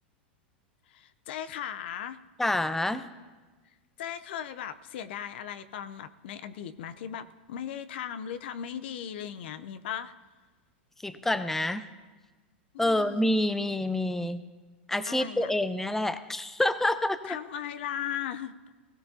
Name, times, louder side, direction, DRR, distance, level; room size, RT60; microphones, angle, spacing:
voice 1, 0.9-2.2 4.0-10.1 12.7-13.4 15.1-15.5 17.3-18.5, left 9 dB, 70° left, 11 dB, 0.7 m, -37 dB
voice 2, 2.4-3.1 11.0-11.8 12.8-14.4 14.9-17.2, left 1 dB, 5° left, 11 dB, 0.7 m, -27 dB
17.5 x 17.5 x 2.8 m, 1.3 s
hypercardioid pair, 100°, 6 cm